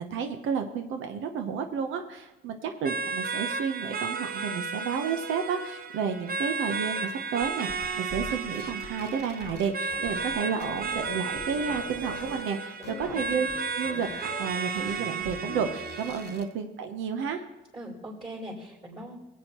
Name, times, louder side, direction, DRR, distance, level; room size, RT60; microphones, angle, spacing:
voice 1, 0.0-13.5 13.7-17.4, right 6 dB, 85° right, 6 dB, 0.8 m, -31 dB
sound 1, 2.8-16.4, right 4 dB, 50° right, 0.8 m, -34 dB
sound 2, 7.4-10.3 10.6-12.4 12.8-16.5, left 6 dB, 60° left, 1.1 m, -42 dB
voice 2, 12.8-13.1 17.7-19.2, right 1 dB, 25° right, -7 dB, 3.9 m, -41 dB
20.0 x 8.3 x 3.0 m, 1.1 s
cardioid pair, 90°, 20 cm